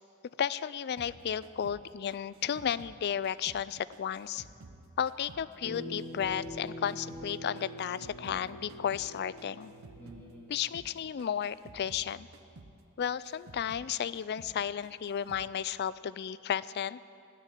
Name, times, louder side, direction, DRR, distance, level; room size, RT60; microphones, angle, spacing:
voice 1, 0.4-4.5 5.0-9.7 10.5-12.3 13.0-17.0, left 8 dB, 50° left, 18 dB, 0.3 m, -33 dB
sound 1, 1.0-3.7 3.9-6.6 6.9-10.3 10.5-10.9 11.2-13.9 14.1-14.6 14.8-15.5, right 2 dB, 70° right, 0.8 m, -53 dB
sound 2, 5.6-10.6, equal, 10° left, 2.1 m, -44 dB
18.5 x 6.7 x 10.0 m, 2.5 s
head